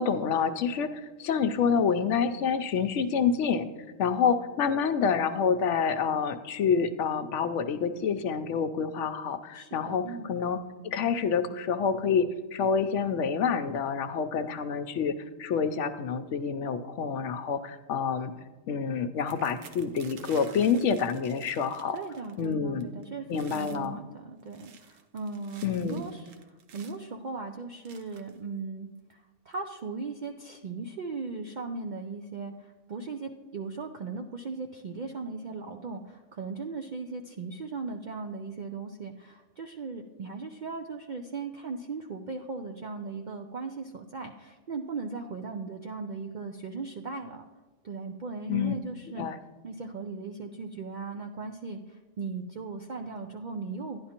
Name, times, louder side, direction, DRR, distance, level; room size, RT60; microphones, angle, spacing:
voice 1, 0.0-3.7 4.0-18.3 18.7-22.0 22.4-22.9 23.3-24.0 25.6-26.0 48.5-48.7 49.2-49.4, left 6 dB, 75° left, 10 dB, 0.9 m, -28 dB
voice 2, 9.5-10.3 21.9-47.4 47.8-49.3 49.6-54.0, right 4 dB, 65° right, 4 dB, 0.4 m, -38 dB
sound 1, 19.2-22.5 22.8-23.0 23.3-23.9 24.4-27.1 27.8-28.4 29.1-29.2 29.5-29.8, right 6 dB, 85° right, 1.2 m, -51 dB
11.0 x 10.5 x 2.9 m, 1.3 s
omnidirectional pair, 1.3 m